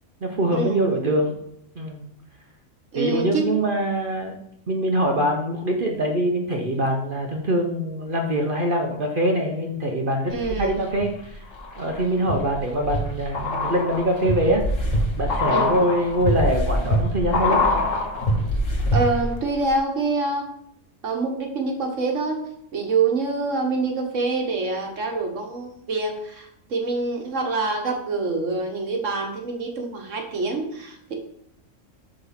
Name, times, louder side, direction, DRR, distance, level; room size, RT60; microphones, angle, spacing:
voice 1, 0.2-1.3 1.8-2.1 2.9-4.3 4.7-11.4 11.8-17.6, right 1 dB, 45° right, 2 dB, 0.9 m, -24 dB
voice 2, 2.9-3.6 10.3-10.8 15.5-15.7 18.9-20.5 21.0-22.4 22.7-31.1, right 3 dB, 65° right, 3 dB, 1.5 m, -26 dB
sound 1, 10.3-11.0 11.5-19.4 19.6-19.7, left 1 dB, 70° left, 1.6 m, -24 dB
7.2 x 3.9 x 5.8 m, 0.73 s
omnidirectional pair, 1.4 m